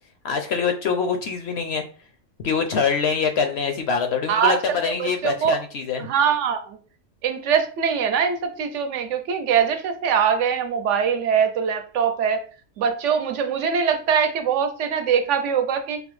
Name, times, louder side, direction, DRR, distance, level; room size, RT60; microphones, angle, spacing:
voice 1, 0.2-1.8 2.4-6.1, left 5 dB, 65° left, 6 dB, 0.7 m, -24 dB
voice 2, 4.3-5.6 6.0-6.8 7.2-12.4 12.8-16.0, right 7 dB, 70° right, 7 dB, 0.9 m, -22 dB
4.9 x 2.0 x 3.0 m, 0.39 s
omnidirectional pair, 1.3 m